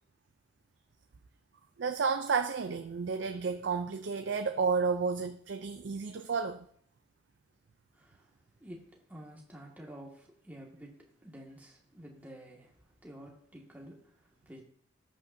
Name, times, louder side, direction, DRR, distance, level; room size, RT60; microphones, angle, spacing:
voice 1, 1.8-6.7, right 5 dB, 90° right, 0.5 m, -31 dB
voice 2, 7.9-8.3 8.6-14.6, equal, 10° right, 1.9 m, -50 dB
13.5 x 8.7 x 2.7 m
head